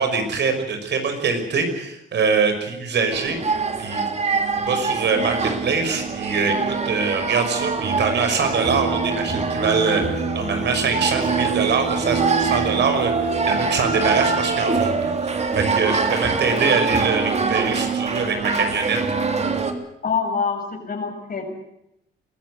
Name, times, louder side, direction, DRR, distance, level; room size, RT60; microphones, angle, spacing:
voice 1, 0.0-3.4 3.8-4.0 4.6-19.0, right 5 dB, 60° right, 6 dB, 5.7 m, -23 dB
sound 1, 3.1-19.7, right 4 dB, 35° right, 3.1 m, -24 dB
voice 2, 20.0-21.5, left 5 dB, 45° left, 3 dB, 7.4 m, -25 dB
23.0 x 14.5 x 9.6 m, 0.81 s
cardioid pair, 90°, 20 cm